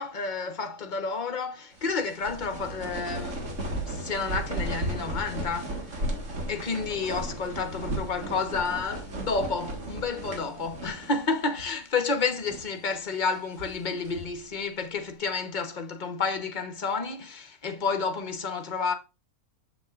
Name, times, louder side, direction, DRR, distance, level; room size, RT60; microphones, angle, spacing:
voice 1, 0.0-3.4 3.8-5.8 6.5-18.9, left 4 dB, 35° left, 1.0 m, -30 dB
sound 1, 1.8-11.3 11.6-11.7 12.3-12.8 13.3-14.4, right 1 dB, 55° right, 2.0 m, -35 dB
7.6 x 7.4 x 2.4 m
omnidirectional pair, 1.5 m